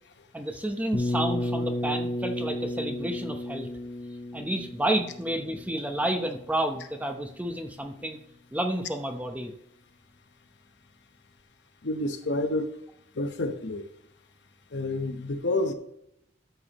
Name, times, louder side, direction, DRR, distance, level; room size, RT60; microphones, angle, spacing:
voice 1, 0.3-3.7 4.3-8.2 8.5-9.5, right 1 dB, 10° right, 5 dB, 0.8 m, -30 dB
sound 1, 0.9-6.7, left 1 dB, 45° left, 1.1 m, -33 dB
voice 2, 11.8-12.7 13.1-13.9 14.7-15.7, left 2 dB, 65° left, 7 dB, 0.9 m, -29 dB
12.5 x 7.0 x 3.0 m, 0.77 s
head